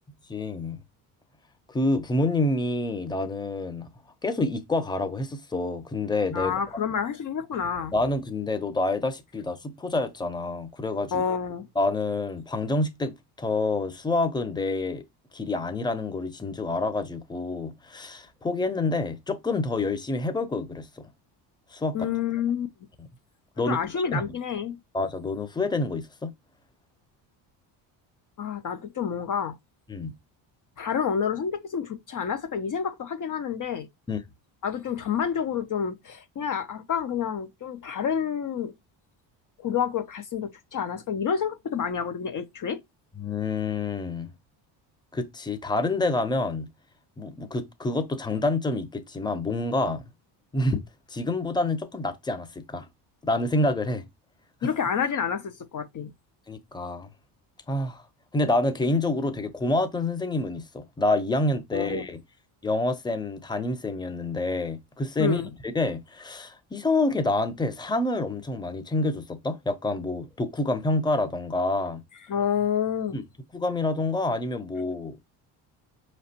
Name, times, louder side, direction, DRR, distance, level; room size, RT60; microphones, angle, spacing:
voice 1, 0.3-0.8 1.7-3.9 4.2-6.5 7.9-11.2 11.8-15.0 15.3-21.0 21.7-22.1 23.6-24.2 24.9-26.3 29.9-30.1 34.1-34.2 43.2-44.3 45.1-46.7 47.2-50.1 50.5-50.8 51.1-52.9 53.2-54.1 54.6-54.7 56.5-57.1 57.7-58.0 58.3-62.2 62.6-72.0 73.1-73.2 73.5-75.2, left 2 dB, 10° left, 0.8 m, -27 dB
voice 2, 6.3-7.9 11.1-11.7 21.9-22.7 23.7-24.8 28.4-29.6 30.8-33.9 34.6-38.7 39.6-42.8 54.6-56.1 61.7-62.1 65.2-65.5 72.3-73.2, left 7 dB, 40° left, 0.7 m, -29 dB
4.8 x 3.2 x 2.9 m
supercardioid pair, 75°, 47 cm